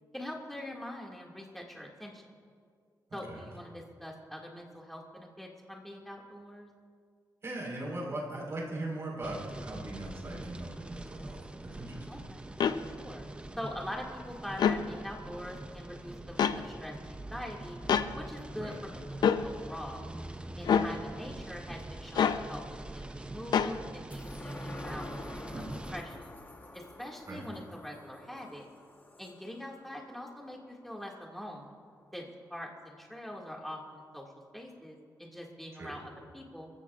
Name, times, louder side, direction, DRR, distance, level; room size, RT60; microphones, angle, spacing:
voice 1, 0.1-2.2 3.1-6.7 12.1-12.5 12.8-13.2 13.6-17.8 18.1-20.0 20.6-25.6 25.9-26.3 26.7-28.7 29.2-31.7 32.1-36.7, left 1 dB, 5° left, -1 dB, 2.1 m, -43 dB
voice 2, 7.4-12.2 18.6-18.8 20.7-20.9 25.5-25.7 27.3-27.4 35.7-35.9, right 1 dB, 40° right, -2 dB, 4.5 m, -39 dB
sound 1, 9.2-26.0, right 2 dB, 15° right, 0.6 m, -44 dB
sound 2, 12.6-12.8 14.5-14.8 16.4-16.6 17.9-18.1 19.2-19.4 20.7-20.9 22.2-22.4 23.5-23.7, left 7 dB, 80° left, 0.6 m, -25 dB
sound 3, 24.1-30.9 31.3-31.4, left 2 dB, 25° left, 1.2 m, -48 dB
29.0 x 15.0 x 2.5 m, 2.1 s
wide cardioid pair, 140°, 7 cm